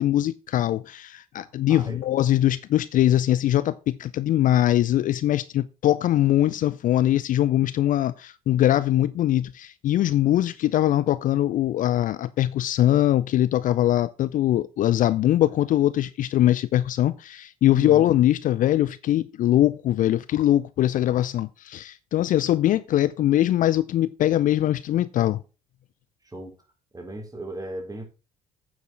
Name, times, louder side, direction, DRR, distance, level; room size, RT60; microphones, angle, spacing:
voice 1, 0.0-25.4, left 13 dB, 45° left, 0.5 m, -22 dB
voice 2, 1.4-2.0 17.7-18.1 26.2-26.6 26.9-28.1, right 2 dB, 20° right, 4.3 m, -37 dB
9.2 x 6.3 x 6.2 m
figure-of-eight pair, 55°, 19 cm